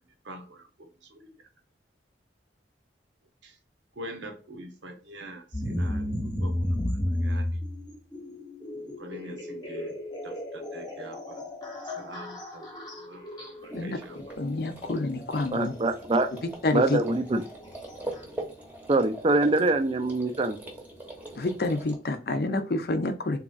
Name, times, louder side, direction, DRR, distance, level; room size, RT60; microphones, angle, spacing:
voice 1, 0.2-1.4 3.4-3.6 3.9-6.8 7.2-7.7 8.7-14.2, right 1 dB, 85° right, 3 dB, 1.0 m, -45 dB
sound 1, 5.5-18.2, left 1 dB, 20° left, 0.9 m, -34 dB
sound 2, 13.6-22.0, right 1 dB, 10° right, 0.8 m, -42 dB
voice 2, 14.4-15.7 16.6-17.0 21.4-23.4, left 2 dB, 55° left, 8 dB, 0.5 m, -28 dB
voice 3, 15.5-16.3 16.7-17.4 18.9-20.6, right 2 dB, 30° right, 8 dB, 0.4 m, -24 dB
3.5 x 2.9 x 2.4 m, 0.37 s
head